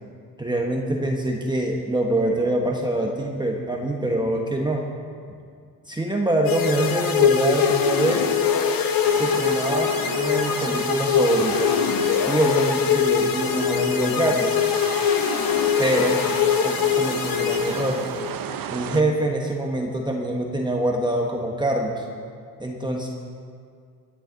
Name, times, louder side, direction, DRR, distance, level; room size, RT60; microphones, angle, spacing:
voice 1, 0.4-4.9 5.9-8.3 9.1-11.7 12.2-14.6 15.8-16.2 16.6-18.0 18.7-22.0 22.6-23.1, right 1 dB, 10° right, 0 dB, 1.2 m, -24 dB
sound 1, 6.5-18.3, left 7 dB, 65° left, 1.1 m, -22 dB
sound 2, 9.0-19.0, right 8 dB, 65° right, 0.8 m, -35 dB
17.5 x 9.9 x 4.0 m, 2.2 s
cardioid pair, 100°, 37 cm